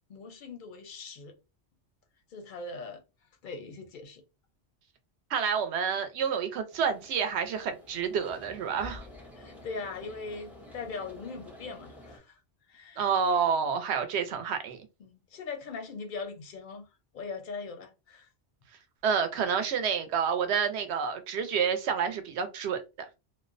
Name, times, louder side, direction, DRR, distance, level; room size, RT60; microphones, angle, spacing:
voice 1, 0.1-1.3 2.3-3.0 3.4-4.2 9.4-12.4 12.7-13.1 15.0-16.9 17.1-18.3, left 4 dB, 60° left, 0.6 m, -40 dB
voice 2, 5.3-9.1 13.0-14.8 19.0-23.1, right 6 dB, 70° right, 0.8 m, -29 dB
sound 1, 6.7-12.2, left 2 dB, ahead, 0.4 m, -49 dB
2.5 x 2.0 x 2.4 m
omnidirectional pair, 1.2 m